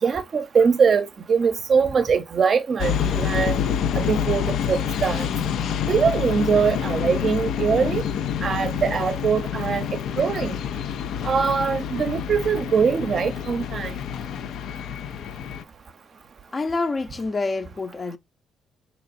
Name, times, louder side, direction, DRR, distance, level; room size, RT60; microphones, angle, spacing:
voice 1, 0.0-3.6 3.9-5.3 5.9-8.0 8.4-10.6 11.2-14.0, right 6 dB, 50° right, 0.5 m, -22 dB
sound 1, 2.8-15.6, left 8 dB, 75° left, 0.4 m, -27 dB
voice 2, 16.5-18.2, left 3 dB, 35° left, 0.6 m, -27 dB
3.9 x 2.9 x 2.5 m
cardioid pair, 90°, 0 cm